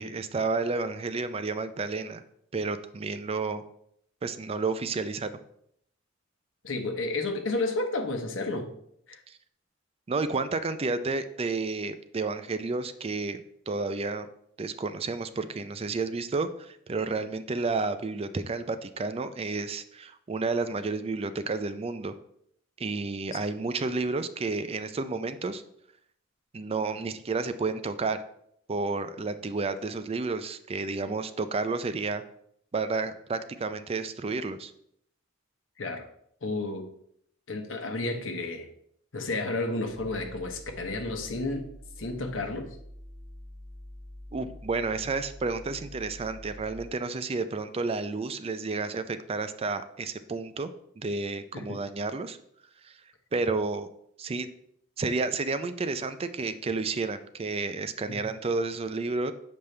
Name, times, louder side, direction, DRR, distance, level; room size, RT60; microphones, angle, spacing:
voice 1, 0.0-2.2 2.5-3.6 4.2-5.3 9.3-9.4 10.1-14.3 14.6-22.1 22.8-25.6 26.5-28.2 28.7-32.2 32.7-34.7 44.3-52.4 52.8-53.0 53.3-53.9 54.2-54.5 55.0-59.3, right 3 dB, 30° right, 11 dB, 0.4 m, -31 dB
voice 2, 6.6-8.7 9.1-9.2 23.3-23.4 35.8-36.1 36.4-36.9 37.5-38.7 39.1-41.7 42.0-42.8 51.5-51.8 58.1-58.2, left 2 dB, 80° left, 4 dB, 1.0 m, -31 dB
sound 1, 39.9-46.8, equal, 30° left, 1.4 m, -46 dB
6.9 x 5.3 x 3.3 m, 0.70 s
head